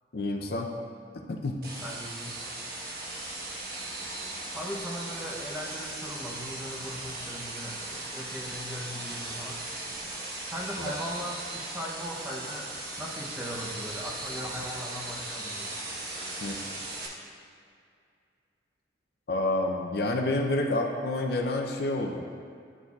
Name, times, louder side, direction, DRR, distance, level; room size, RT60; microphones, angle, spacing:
voice 1, 0.1-0.7 1.3-1.6 10.8-10.9 16.4-16.6 19.3-22.2, left 2 dB, 55° left, 3 dB, 0.5 m, -28 dB
sound 1, 1.6-17.1, right 2 dB, 55° right, 1.0 m, -38 dB
voice 2, 1.8-2.4 4.5-9.6 10.5-15.7, equal, 10° right, -3 dB, 0.7 m, -39 dB
11.0 x 4.5 x 2.3 m, 2.3 s
head